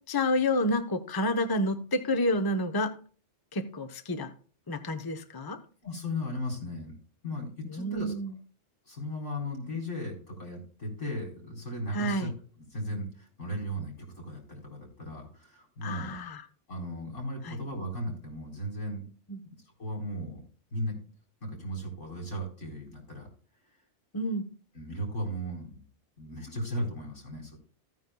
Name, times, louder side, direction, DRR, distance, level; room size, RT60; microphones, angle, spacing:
voice 1, 0.1-2.9 3.5-4.3 4.7-5.6 7.7-8.4 11.9-12.3 15.8-16.4 17.4-17.6 19.3-19.4 24.1-24.5, left 1 dB, 20° left, 8 dB, 0.7 m, -29 dB
voice 2, 5.8-6.9 7.2-8.1 8.9-12.3 12.7-16.2 16.7-19.0 19.8-20.4 20.7-21.0 21.4-23.3 24.7-25.8 26.2-27.6, equal, 85° left, 0 dB, 4.7 m, -36 dB
15.0 x 9.5 x 2.2 m, 0.42 s
omnidirectional pair, 1.2 m